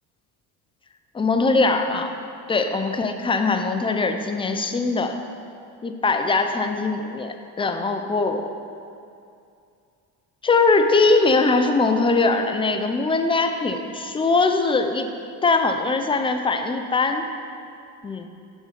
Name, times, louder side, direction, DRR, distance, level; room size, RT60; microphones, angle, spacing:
voice 1, 1.1-2.1 2.5-5.2 5.8-8.5 10.4-15.1 15.4-17.3 18.0-18.3, left 3 dB, 15° left, 6 dB, 0.4 m, -21 dB
6.2 x 3.8 x 5.0 m, 2.5 s
supercardioid pair, 65°, 44 cm